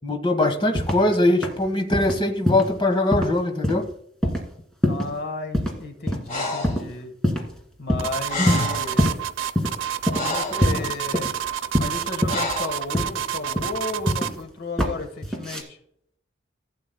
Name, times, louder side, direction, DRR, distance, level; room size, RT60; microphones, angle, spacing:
voice 1, 0.0-3.8 10.6-10.9, left 2 dB, 25° left, 3 dB, 1.4 m, -22 dB
sound 1, 0.7-1.1 1.4-1.6 1.9-2.2 2.5-2.8 3.1-3.3 3.6-3.9 4.2-4.5 4.8-5.2 5.5-5.8 6.1-6.2 6.6-6.9 7.2-7.6 7.9-8.1 8.5-9.2 9.6-9.7 10.1-10.3 10.6-11.5 11.7-12.5 12.9-13.2 13.5-14.4 14.8-15.0 15.2-15.6, equal, 5° left, 1.9 m, -24 dB
voice 2, 4.9-7.1 7.8-9.1 10.2-11.4 11.8-15.8, left 3 dB, 60° left, 6 dB, 1.4 m, -33 dB
Breathing, 6.3-6.8 8.0-8.1 8.3-9.0 9.7-10.7 12.3-12.8, left 2 dB, 40° left, 1.8 m, -27 dB
sound 2, 8.0-14.4, right 10 dB, 75° right, 0.6 m, -29 dB
16.0 x 8.6 x 2.2 m, 0.70 s
head